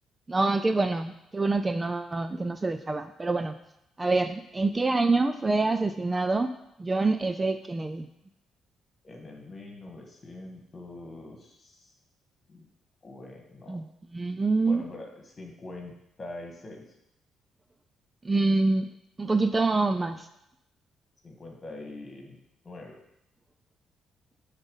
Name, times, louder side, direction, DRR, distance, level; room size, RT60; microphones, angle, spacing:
voice 1, 0.3-3.6 4.0-6.5 6.8-8.1 13.7-13.8 14.1-14.8 18.2-18.9 19.2-20.3, right 3 dB, 20° right, 9 dB, 0.4 m, -26 dB
voice 2, 9.0-11.9 12.5-12.7 13.0-13.8 14.6-16.9 21.2-22.4 22.6-23.0, left 2 dB, 35° left, 1 dB, 1.7 m, -44 dB
7.0 x 4.1 x 5.5 m, 0.81 s
cardioid pair, 90°, 0 cm